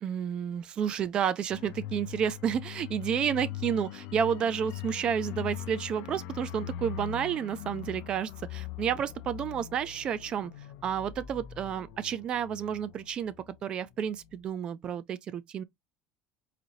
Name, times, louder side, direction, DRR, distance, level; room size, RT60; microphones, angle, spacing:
voice 1, 0.0-10.5 10.8-13.3 13.6-15.6, right 8 dB, 35° right, 0.4 m, -31 dB
sound 1, 1.5-13.9 14.2-14.3, left 11 dB, 70° left, 0.4 m, -41 dB
4.1 x 2.6 x 2.9 m
cardioid pair, 150°, 3 cm